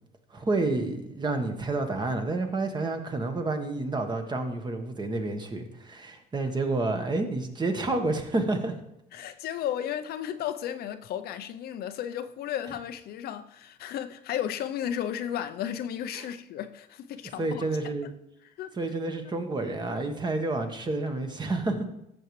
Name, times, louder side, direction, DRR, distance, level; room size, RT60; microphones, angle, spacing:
voice 1, 0.3-8.8 16.1-16.3 17.4-18.1 18.8-21.8, right 2 dB, 25° right, 1.2 m, -29 dB
voice 2, 9.1-17.6 18.6-18.7, left 10 dB, 65° left, 0.6 m, -34 dB
14.0 x 7.0 x 3.2 m
cardioid pair, 110°, 17 cm